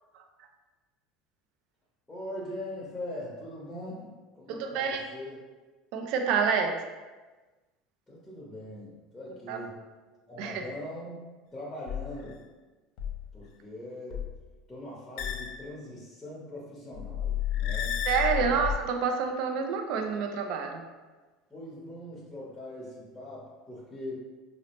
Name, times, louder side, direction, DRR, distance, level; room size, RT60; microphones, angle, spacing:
voice 1, 2.1-5.4 8.1-9.9 10.3-12.4 13.0-13.1 13.3-14.3 14.7-18.0 18.3-18.6 21.5-24.2, left 1 dB, 10° left, -6 dB, 0.8 m, -41 dB
voice 2, 4.5-5.1 5.9-6.8 9.5-9.6 10.4-10.6 18.1-20.8, right 6 dB, 65° right, 4 dB, 0.4 m, -28 dB
sound 1, 11.9-12.3 13.0-13.4 14.1-14.4 15.2-15.6 16.9-18.8, left 9 dB, 65° left, 0.4 m, -32 dB
3.9 x 2.0 x 2.9 m, 1.3 s
supercardioid pair, 130°, 0 cm